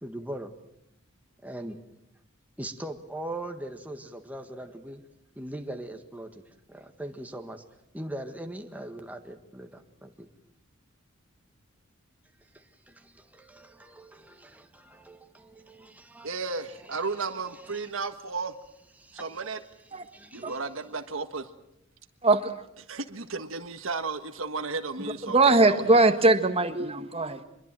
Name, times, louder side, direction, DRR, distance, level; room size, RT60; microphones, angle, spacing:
voice 1, 0.0-0.5 1.4-1.8 2.6-5.0 5.4-6.3 6.7-7.6 7.9-10.3 12.5-16.3 16.8-17.0 17.6-17.8 19.0-19.4 20.1-20.6, right 1 dB, 10° right, 5 dB, 1.7 m, -40 dB
voice 2, 16.2-18.6 19.1-19.6 20.3-21.5 22.9-25.9, right 4 dB, 70° right, 8 dB, 1.5 m, -34 dB
voice 3, 22.2-22.5 25.3-27.4, right 2 dB, 30° right, 8 dB, 1.6 m, -21 dB
25.0 x 22.0 x 7.6 m, 0.82 s
head